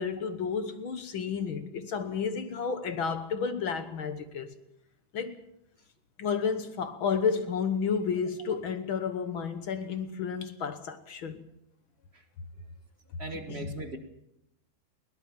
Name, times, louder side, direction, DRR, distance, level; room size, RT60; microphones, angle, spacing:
voice 1, 0.0-4.5 5.1-5.4 6.2-11.4 13.3-13.8, left 6 dB, 55° left, 1.5 m, -31 dB
voice 2, 13.2-14.0, right 2 dB, 35° right, 1.1 m, -38 dB
21.5 x 18.0 x 7.2 m
omnidirectional pair, 3.6 m